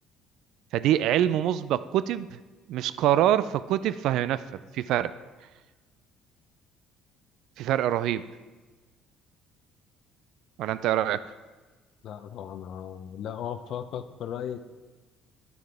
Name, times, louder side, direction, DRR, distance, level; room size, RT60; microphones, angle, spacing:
voice 1, 0.7-2.4 2.7-4.4 4.7-5.1 7.6-8.2 10.6-11.3, right 12 dB, 70° right, 15 dB, 0.3 m, -25 dB
voice 2, 12.0-14.6, left 9 dB, 65° left, 11 dB, 0.6 m, -36 dB
9.4 x 9.3 x 3.4 m, 1.2 s
supercardioid pair, 75°, 0 cm